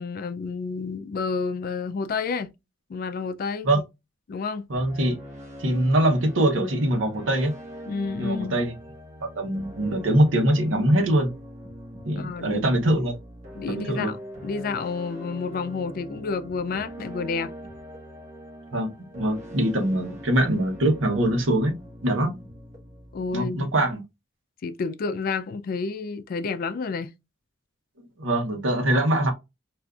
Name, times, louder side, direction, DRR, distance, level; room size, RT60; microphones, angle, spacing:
voice 1, 0.0-2.5 2.9-3.8 4.3-4.7 7.9-8.6 12.1-12.6 13.6-14.2 14.4-17.5 23.1-23.9 24.6-27.1, left 4 dB, 50° left, 0.3 m, -30 dB
sound 1, 4.7-23.9, equal, 40° right, 1.1 m, -42 dB
voice 2, 4.7-5.1 5.6-7.5 8.2-8.7 9.4-11.3 12.1-13.1 13.7-14.1 18.7-21.8 22.0-22.3 23.3-24.0 28.2-29.3, right 1 dB, 90° right, 0.9 m, -23 dB
3.6 x 2.5 x 2.3 m
head